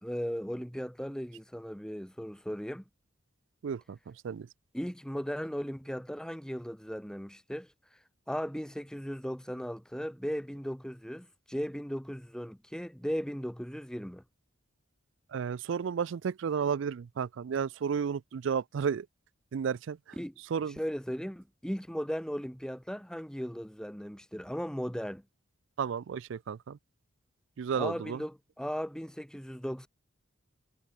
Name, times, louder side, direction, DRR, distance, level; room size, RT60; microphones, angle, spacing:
voice 1, 0.0-2.8 4.7-7.7 8.3-14.2 20.2-20.3 20.8-25.2 27.7-29.9, equal, 5° left, 1.9 m, -37 dB
voice 2, 3.6-4.5 15.3-19.1 19.5-20.0 20.5-20.8 25.8-26.8 27.6-28.2, right 6 dB, 65° right, 0.3 m, -32 dB
head